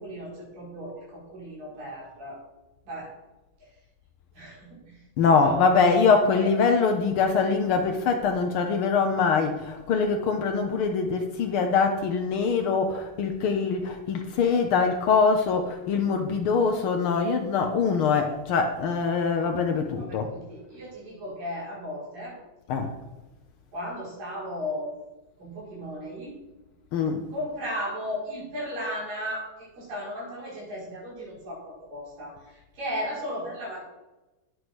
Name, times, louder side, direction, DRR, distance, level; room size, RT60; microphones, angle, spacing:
voice 1, 0.0-2.4 2.9-3.1 4.3-5.6 6.4-6.5 19.8-22.4 23.7-24.9 25.4-26.4 27.3-33.8, equal, 90° right, -5 dB, 7.1 m, -35 dB
voice 2, 5.2-20.3 22.7-22.9 26.9-27.2, left 5 dB, 85° left, 5 dB, 1.2 m, -23 dB
10.0 x 9.8 x 6.2 m, 1.1 s
omnidirectional pair, 3.8 m